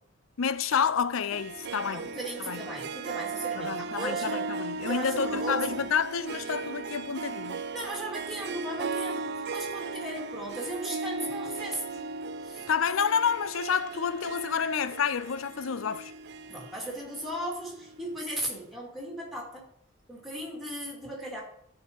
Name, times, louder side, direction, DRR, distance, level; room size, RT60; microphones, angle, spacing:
voice 1, 0.4-2.1 2.4-2.6 3.6-7.6 12.7-16.1, left 6 dB, 70° left, 0.5 m, -29 dB
Harp, 1.3-18.1, right 4 dB, 55° right, 0.4 m, -37 dB
voice 2, 1.8-4.5 4.8-5.8 7.7-12.1 12.4-12.7 16.5-19.7 20.1-21.4, right 1 dB, ahead, 2.6 m, -37 dB
13.5 x 4.7 x 5.3 m
head